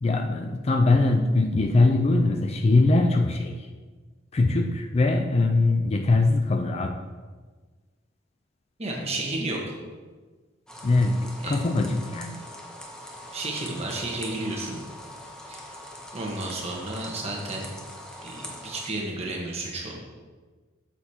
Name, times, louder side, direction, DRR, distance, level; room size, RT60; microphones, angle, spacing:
voice 1, 0.0-3.7 4.3-7.0 10.8-12.4, left 2 dB, 30° left, 5 dB, 0.4 m, -22 dB
voice 2, 8.8-9.6 11.4-11.6 13.3-14.8 15.5-15.6 16.1-17.7 18.2-20.0, right 2 dB, 30° right, -1 dB, 1.2 m, -32 dB
sound 1, 10.7-18.9, left 1 dB, 5° left, 0.8 m, -42 dB
8.1 x 6.9 x 2.8 m, 1.4 s
head